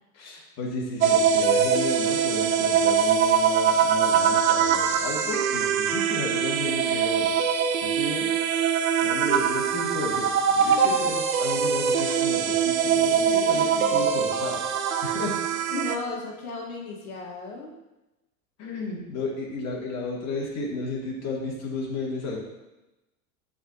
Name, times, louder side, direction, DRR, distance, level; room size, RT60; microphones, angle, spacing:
voice 1, 0.1-7.3 7.8-8.3 9.0-15.3 18.6-22.4, left 3 dB, 35° left, -3 dB, 2.3 m, -33 dB
sound 1, 1.0-16.0, right 7 dB, 70° right, 0.7 m, -23 dB
voice 2, 10.6-11.1 13.2-14.1 15.7-17.8, left 3 dB, 70° left, 0 dB, 1.7 m, -36 dB
11.0 x 4.4 x 2.8 m, 0.99 s
figure-of-eight pair, 85°, 43 cm